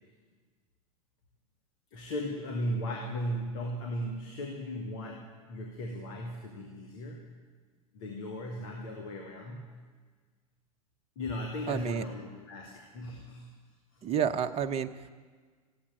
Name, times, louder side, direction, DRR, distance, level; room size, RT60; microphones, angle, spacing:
voice 1, 1.9-7.3 7.9-9.8 11.2-13.5 14.0-14.1, equal, 60° left, 1 dB, 2.3 m, -37 dB
voice 2, 11.7-12.0 14.0-15.1, right 8 dB, 35° right, 7 dB, 0.9 m, -30 dB
15.0 x 8.6 x 9.7 m, 1.5 s
hypercardioid pair, 90°, 19 cm